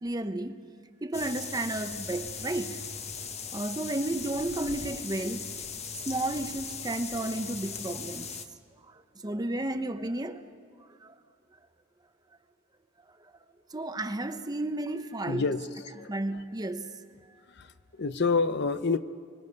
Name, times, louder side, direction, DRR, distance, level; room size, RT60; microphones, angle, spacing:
voice 1, 0.0-0.6 1.0-2.8 3.5-5.6 6.1-8.3 8.9-10.5 10.8-11.1 13.7-15.5 16.1-17.0, right 2 dB, 20° right, 0.8 m, -33 dB
sound 1, 1.1-8.5, left 6 dB, 35° left, 1.0 m, -39 dB
voice 2, 15.3-16.1 17.5-17.7 18.0-19.0, left 4 dB, 60° left, 0.7 m, -28 dB
24.5 x 24.5 x 5.4 m
head